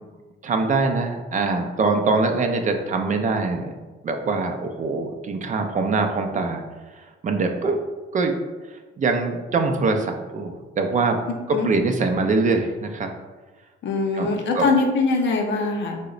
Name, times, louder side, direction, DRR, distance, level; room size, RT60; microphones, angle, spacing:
voice 1, 0.4-3.7 4.0-6.6 7.0-7.8 8.1-8.4 8.7-11.2 11.5-13.1 14.1-14.7, right 3 dB, 40° right, 4 dB, 0.4 m, -23 dB
voice 2, 13.8-16.0, left 3 dB, 65° left, 2 dB, 0.6 m, -22 dB
3.0 x 2.1 x 3.7 m, 1.3 s
cardioid pair, 90°, 20 cm